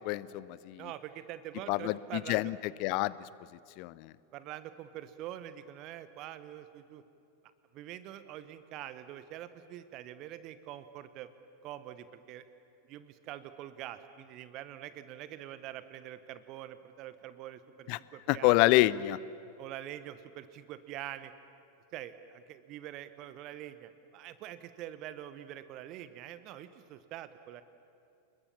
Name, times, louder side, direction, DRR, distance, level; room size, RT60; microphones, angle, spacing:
voice 1, 0.0-0.9 1.7-2.6 2.8-3.1 3.8-4.1 17.9-18.0 18.3-19.2, left 19 dB, 45° left, 20 dB, 0.6 m, -27 dB
voice 2, 0.8-2.5 4.3-7.0 7.7-11.3 11.6-12.4 12.9-18.6 19.6-21.3 21.9-27.6, right 12 dB, 40° right, 13 dB, 1.1 m, -45 dB
29.0 x 21.5 x 7.1 m, 2.4 s
figure-of-eight pair, 90°, 0 cm